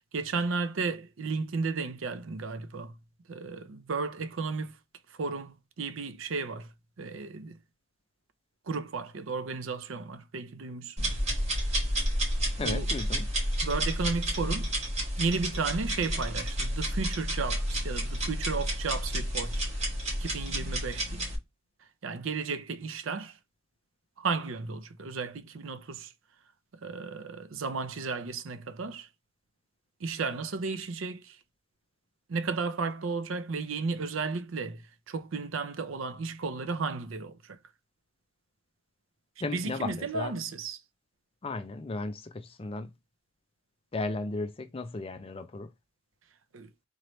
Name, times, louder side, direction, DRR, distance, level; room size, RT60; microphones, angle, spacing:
voice 1, 0.1-2.9 3.3-4.7 5.2-6.7 7.0-7.6 8.7-11.1 12.6-12.8 13.6-14.7 15.2-19.7 20.2-21.3 22.0-23.3 24.2-26.1 26.8-29.1 30.0-31.4 32.3-37.6 39.5-40.8 46.5-46.7, right 4 dB, 80° right, 0.6 m, -34 dB
sound 1, 11.0-21.4, equal, 35° right, 1.8 m, -30 dB
voice 2, 12.6-13.3 39.4-40.3 41.4-42.9 43.9-45.7, left 3 dB, 30° left, 0.5 m, -35 dB
3.9 x 3.1 x 3.1 m
head